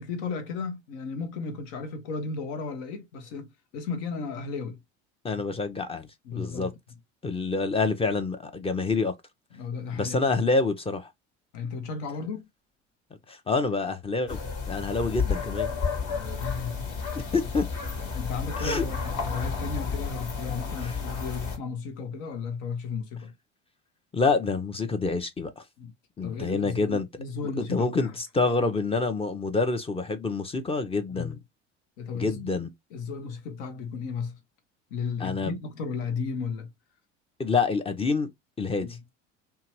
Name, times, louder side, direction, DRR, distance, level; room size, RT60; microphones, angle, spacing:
voice 1, 0.0-4.8 5.3-5.4 6.2-6.8 9.5-10.2 11.5-12.5 16.1-17.2 18.1-23.3 25.8-25.9 26.2-28.1 31.1-31.4 32.0-32.6 32.9-34.4 34.9-36.7 38.8-39.0, left 5 dB, 70° left, 0.9 m, -34 dB
voice 2, 5.2-6.7 7.2-9.1 9.9-11.1 13.3-14.4 14.7-15.7 17.1-17.7 18.6-18.8 20.8-20.9 24.1-25.6 26.2-27.1 27.6-31.4 32.1-32.7 35.2-35.6 37.4-38.3 38.6-38.9, left 3 dB, 15° left, 0.5 m, -27 dB
sound 1, 14.3-21.6, left 5 dB, 50° left, 1.3 m, -31 dB
2.8 x 2.3 x 2.9 m
hypercardioid pair, 70°, 37 cm